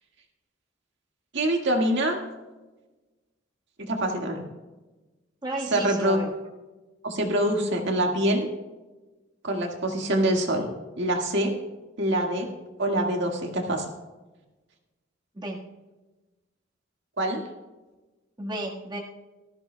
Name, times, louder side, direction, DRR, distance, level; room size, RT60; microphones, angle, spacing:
voice 1, 1.3-2.2 3.8-4.5 5.7-6.2 7.0-8.5 9.4-10.7 11.0-11.5 12.0-12.5 12.8-13.9 17.2-17.4, right 1 dB, 65° right, 2 dB, 1.8 m, -25 dB
voice 2, 5.4-6.3 15.3-15.6 18.4-19.0, right 1 dB, 20° right, -2 dB, 1.5 m, -32 dB
18.5 x 14.0 x 2.2 m, 1.2 s
head